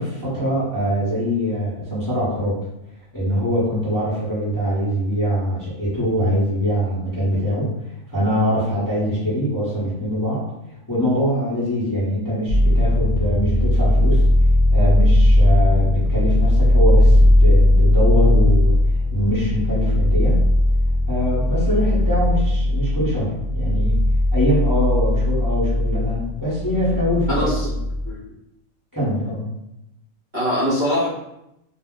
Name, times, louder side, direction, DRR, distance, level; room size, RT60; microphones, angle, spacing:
voice 1, 0.0-2.6 3.1-7.7 8.1-10.4 10.9-14.2 14.7-18.8 19.1-20.4 21.1-24.0 24.3-27.5 28.9-29.5, equal, 15° left, -9 dB, 0.8 m, -23 dB
sound 1, 12.5-28.1, left 1 dB, 70° right, 0.9 m, -18 dB
voice 2, 27.3-27.7 28.0-28.2 30.3-31.1, equal, 45° right, -9 dB, 0.7 m, -22 dB
2.4 x 2.1 x 3.6 m, 0.85 s
omnidirectional pair, 1.4 m